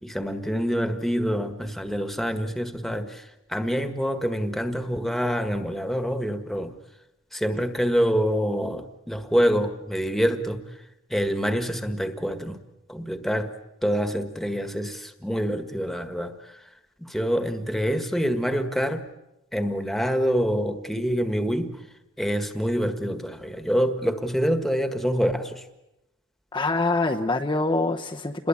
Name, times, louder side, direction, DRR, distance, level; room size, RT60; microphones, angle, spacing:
voice 1, 0.0-6.7 7.3-10.6 11.1-12.6 12.9-13.5 13.8-16.6 17.0-19.1 19.5-21.8 22.2-25.7, equal, ahead, 7 dB, 1.7 m, -26 dB
voice 2, 26.5-28.5, left 2 dB, 20° left, 0 dB, 1.0 m, -25 dB
28.5 x 21.0 x 8.6 m, 0.94 s
head